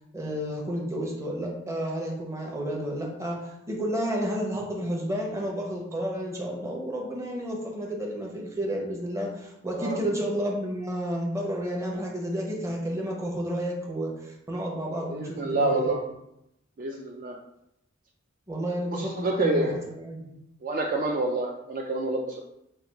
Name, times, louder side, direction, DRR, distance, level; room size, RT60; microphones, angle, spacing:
voice 1, 0.1-15.9 18.5-20.4, equal, 15° right, -1 dB, 0.7 m, -31 dB
voice 2, 15.1-16.0 16.8-17.4 18.9-19.8 20.6-22.4, right 2 dB, 45° right, 1 dB, 0.3 m, -28 dB
3.4 x 2.3 x 4.4 m, 0.82 s
head